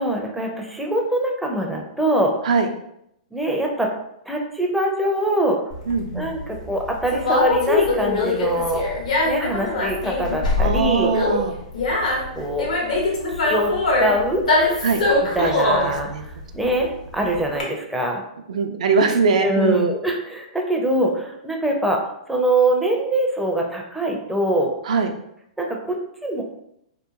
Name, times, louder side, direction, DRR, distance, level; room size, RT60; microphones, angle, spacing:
voice 1, 0.0-2.3 3.3-3.9 4.3-5.6 6.1-8.9 9.2-11.1 12.4-12.7 13.3-13.7 14.0-14.5 15.3-18.2 19.4-24.7 25.6-26.4, right 1 dB, 5° right, 0 dB, 0.4 m, -23 dB
Conversation, 5.7-17.6, left 2 dB, 80° left, 0.9 m, -22 dB
voice 2, 5.9-6.3 10.6-11.5 14.8-15.0 15.4-16.2 18.5-19.9 24.9-25.1, right 4 dB, 70° right, 5 dB, 0.3 m, -21 dB
2.8 x 2.4 x 2.3 m, 0.76 s
hypercardioid pair, 125°, 4 cm